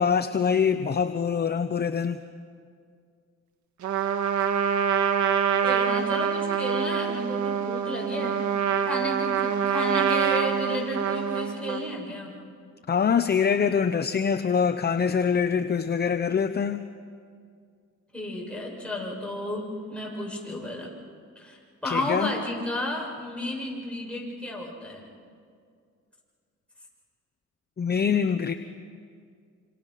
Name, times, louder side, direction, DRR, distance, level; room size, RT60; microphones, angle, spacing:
voice 1, 0.0-2.2 12.9-16.8 21.8-22.3 27.8-28.5, left 6 dB, 35° left, 10 dB, 0.8 m, -24 dB
Trumpet, 3.8-11.9, right 7 dB, 70° right, 1.6 m, -25 dB
voice 2, 5.6-8.4 8.8-12.3 18.1-20.9 21.4-25.0, left 1 dB, 5° left, -3 dB, 7.2 m, -33 dB
27.5 x 27.0 x 5.9 m, 2.2 s
cardioid pair, 90°, 30 cm